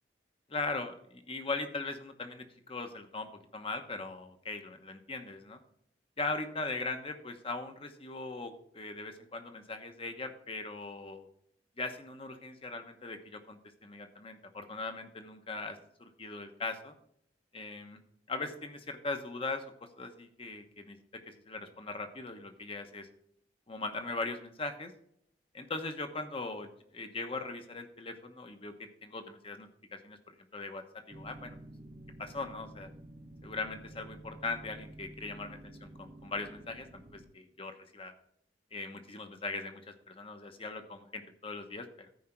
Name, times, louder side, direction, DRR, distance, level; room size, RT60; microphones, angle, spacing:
voice 1, 0.5-5.6 6.2-11.3 11.8-16.9 17.5-18.0 18.3-23.1 23.7-24.9 25.5-31.6 32.2-32.9 33.4-36.9 37.1-38.1 38.7-42.1, left 3 dB, 35° left, 6 dB, 1.1 m, -40 dB
sound 1, 31.1-37.3, right 1 dB, 30° right, 0.9 m, -50 dB
13.5 x 5.0 x 4.5 m, 0.68 s
head